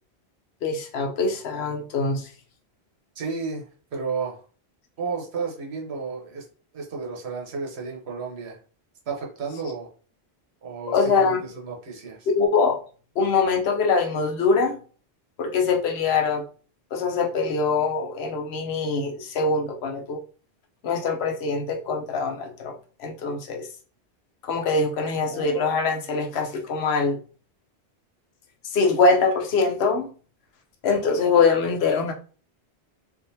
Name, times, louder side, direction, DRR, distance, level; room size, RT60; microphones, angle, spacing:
voice 1, 0.6-2.3 10.9-11.4 12.3-12.8 13.2-14.8 15.4-16.4 16.9-20.2 20.8-23.7 24.4-27.2 28.6-30.1 30.8-32.1, left 4 dB, 80° left, 4 dB, 0.9 m, -23 dB
voice 2, 3.2-4.4 5.0-6.4 6.7-8.6 9.1-9.9 10.6-12.3, right 4 dB, 80° right, -1 dB, 1.1 m, -32 dB
3.5 x 2.5 x 2.7 m, 0.40 s
omnidirectional pair, 1.1 m